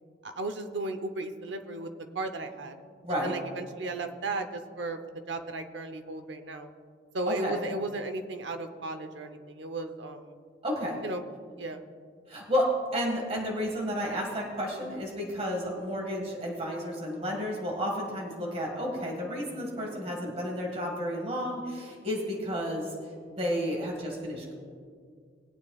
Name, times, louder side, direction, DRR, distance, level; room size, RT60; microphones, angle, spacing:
voice 1, 0.2-2.8 3.2-5.0 5.3-6.7 7.1-10.3 11.0-11.2 11.6-11.8 14.8-15.0 19.8-20.1, right 2 dB, 80° right, 7 dB, 0.8 m, -35 dB
voice 2, 3.0-3.4 7.3-7.6 10.6-11.0 12.3-22.9 23.3-24.5, equal, 35° right, -1 dB, 1.8 m, -31 dB
20.5 x 8.6 x 2.4 m, 2.1 s
head